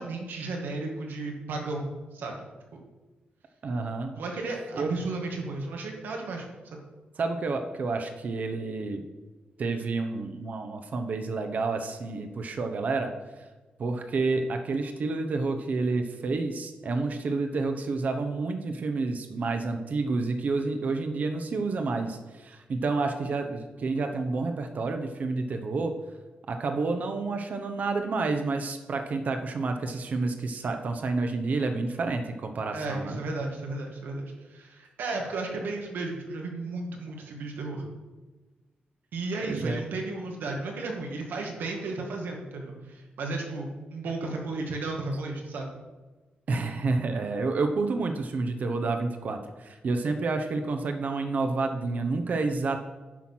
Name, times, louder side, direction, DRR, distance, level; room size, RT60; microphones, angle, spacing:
voice 1, 0.0-2.4 2.7-2.8 4.2-6.5 6.7-6.8 32.7-37.9 39.1-45.7, right 3 dB, 90° right, 1 dB, 1.9 m, -34 dB
voice 2, 3.6-4.2 4.7-4.9 7.2-9.0 9.6-13.1 13.8-26.0 26.5-33.2 39.5-39.8 46.5-52.8, right 3 dB, 50° right, 5 dB, 0.8 m, -29 dB
10.5 x 5.7 x 6.1 m, 1.2 s
wide cardioid pair, 130°, 3 cm